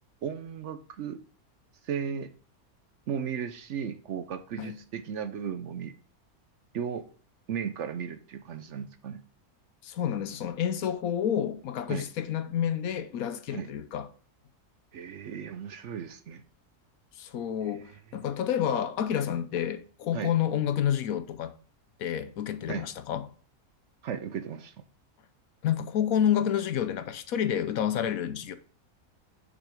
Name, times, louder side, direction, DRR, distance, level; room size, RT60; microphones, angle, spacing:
voice 1, 0.2-1.2 1.8-2.3 3.1-5.9 6.7-7.1 7.5-9.2 11.9-12.1 13.5-13.7 14.9-16.4 17.6-17.7 20.1-20.3 22.7-22.8 24.0-24.7, right 7 dB, 60° right, 0.9 m, -35 dB
voice 2, 9.8-14.1 17.2-21.5 22.0-23.3 25.6-28.6, left 9 dB, 75° left, 1.2 m, -29 dB
6.8 x 6.0 x 4.9 m
omnidirectional pair, 1.6 m